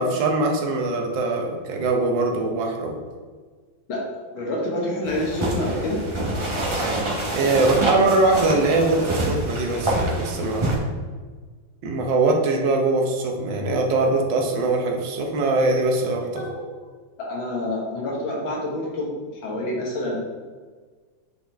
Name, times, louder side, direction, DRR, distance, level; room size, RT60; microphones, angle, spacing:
voice 1, 0.0-3.0 7.3-10.7 11.8-16.4, right 2 dB, 70° right, 2 dB, 1.5 m, -22 dB
voice 2, 4.3-6.0 16.3-16.6 17.2-19.1 19.4-20.2, left 1 dB, 80° left, -3 dB, 1.9 m, -27 dB
sound 1, 5.0-10.8, right 1 dB, 30° right, 0.5 m, -26 dB
7.4 x 4.2 x 3.4 m, 1.5 s
omnidirectional pair, 2.1 m